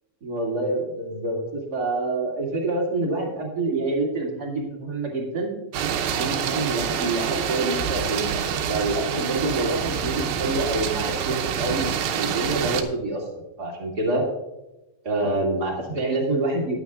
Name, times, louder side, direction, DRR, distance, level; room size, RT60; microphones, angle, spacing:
voice 1, 0.2-5.5 6.1-13.2 13.6-14.2 15.0-16.7, right 2 dB, 30° right, -2 dB, 2.5 m, -27 dB
sound 1, 5.7-12.8, right 8 dB, 80° right, 2.7 m, -27 dB
18.5 x 8.8 x 2.4 m, 1.0 s
omnidirectional pair, 4.3 m